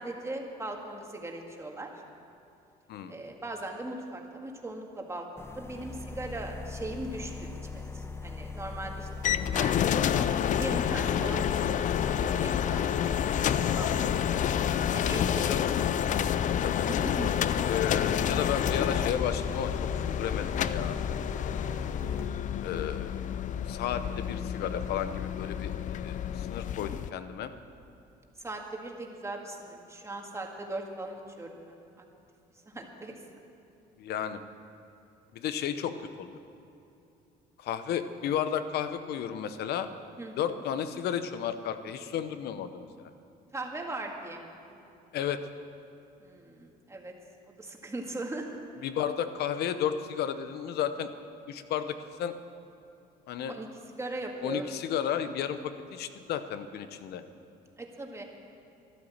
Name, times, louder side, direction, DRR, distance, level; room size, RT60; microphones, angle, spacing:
voice 1, 0.0-1.9 3.1-9.1 9.5-11.5 11.8-12.9 13.7-14.4 14.9-15.5 16.9-17.4 28.4-31.8 32.7-33.2 40.2-40.4 43.5-44.6 46.2-47.1 47.6-48.5 53.5-53.7 54.0-54.7 57.8-58.2, right 2 dB, 15° right, 1 dB, 1.9 m, -39 dB
sound 1, 5.4-22.3, left 4 dB, 15° left, 0.7 m, -38 dB
sound 2, 9.2-27.1, left 10 dB, 50° left, 0.5 m, -29 dB
voice 2, 17.7-21.0 22.6-23.1 23.7-27.5 34.0-34.4 35.3-36.3 37.6-39.9 40.4-42.9 45.1-45.4 48.8-51.1 51.5-52.3 53.3-53.5 54.4-57.2, left 9 dB, 70° left, 11 dB, 0.9 m, -33 dB
13.0 x 12.0 x 7.3 m, 2.7 s
cardioid pair, 110°, 17 cm